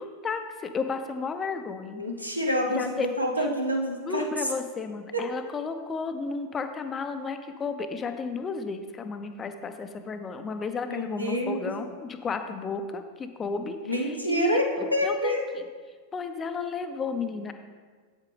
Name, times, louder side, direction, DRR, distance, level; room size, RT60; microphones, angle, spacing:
voice 1, 0.0-2.0 2.7-3.1 3.4-3.5 4.0-15.7 16.1-17.5, left 4 dB, 20° left, 7 dB, 0.6 m, -33 dB
voice 2, 1.9-4.2 5.1-5.3 10.9-11.7 13.9-14.6 14.9-15.4, equal, 90° right, 0 dB, 0.9 m, -27 dB
8.3 x 8.2 x 3.4 m, 1.5 s
figure-of-eight pair, 90°, 0 cm